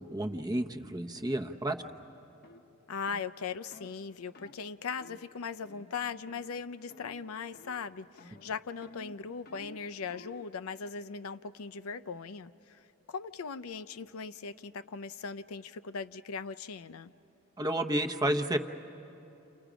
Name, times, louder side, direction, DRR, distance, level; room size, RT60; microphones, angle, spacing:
voice 1, 0.0-1.8 17.6-18.6, right 1 dB, 20° right, 5 dB, 0.8 m, -31 dB
sound 1, 0.5-0.7 1.2-1.4 1.8-2.0 2.4-2.6 3.1-3.3 3.7-4.0 4.4-4.6 5.0-5.2 5.6-6.0 6.3-6.6 6.9-7.3 7.5-7.9 8.2-10.5, left 2 dB, 45° left, 0.9 m, -53 dB
voice 2, 2.9-17.1, left 5 dB, 80° left, 10 dB, 0.5 m, -39 dB
29.5 x 29.5 x 5.1 m, 3.0 s
head